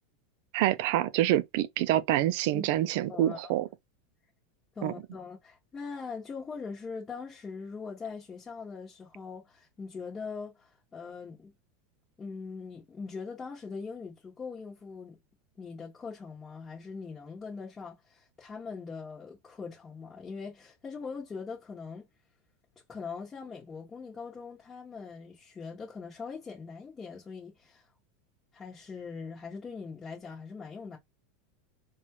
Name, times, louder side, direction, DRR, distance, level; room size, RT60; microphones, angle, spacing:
voice 1, 0.5-3.7 4.8-4.9, right 13 dB, 65° right, 0.4 m, -26 dB
voice 2, 3.1-3.6 4.7-11.5 12.2-15.2 15.6-22.1 22.9-27.9 28.5-31.0, left 5 dB, 20° left, 1.1 m, -41 dB
4.1 x 2.4 x 2.9 m
supercardioid pair, 125°, 0 cm